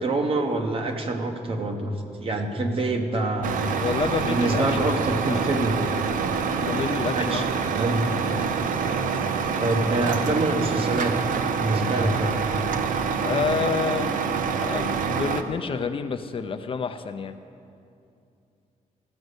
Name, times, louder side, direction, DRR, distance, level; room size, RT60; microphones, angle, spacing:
voice 1, 0.0-1.9 2.2-3.6 4.2-5.8 7.1-7.4 7.7-8.1 9.6-11.2 11.6-12.4, right 2 dB, 45° right, 4 dB, 1.0 m, -25 dB
Truck, 3.4-15.4, right 6 dB, 75° right, 0.6 m, -26 dB
voice 2, 3.8-5.0 5.3-5.5 6.6-7.4 13.2-14.2 14.6-17.4, left 6 dB, 40° left, 8 dB, 0.4 m, -28 dB
14.0 x 5.3 x 8.0 m, 2.6 s
wide cardioid pair, 140°, 14 cm